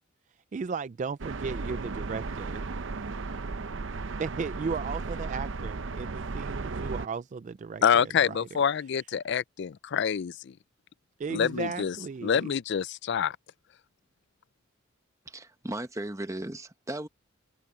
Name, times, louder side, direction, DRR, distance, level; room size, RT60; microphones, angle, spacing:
voice 1, 0.5-2.6 4.2-7.8 8.3-8.4 11.2-12.5, right 5 dB, 35° right, 0.3 m, -35 dB
sound 1, 1.2-7.1, right 3 dB, 65° right, 0.7 m, -35 dB
voice 2, 7.8-10.5 11.3-12.0 12.2-13.4, left 7 dB, 55° left, 0.4 m, -26 dB
voice 3, 15.3-17.1, right 1 dB, 15° right, 1.0 m, -36 dB
head